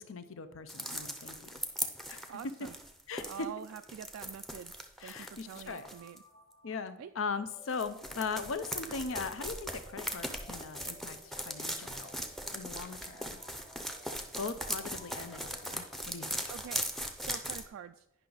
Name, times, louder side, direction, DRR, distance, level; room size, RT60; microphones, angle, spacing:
voice 1, 0.0-1.6 2.1-2.5 3.1-3.5 5.0-5.9 6.6-12.1 12.5-13.4 14.4-16.3, left 4 dB, 75° left, 11 dB, 0.6 m, -39 dB
sound 1, 0.7-6.2 7.7-17.6, equal, ahead, 0.6 m, -39 dB
voice 2, 2.3-2.8 3.3-4.7 5.0-6.2 7.0-7.1 16.5-16.8 17.2-18.1, right 8 dB, 85° right, 8 dB, 0.3 m, -45 dB
sound 2, 5.7-16.4, equal, 25° left, 1.0 m, -58 dB
10.0 x 5.7 x 3.9 m, 0.84 s
head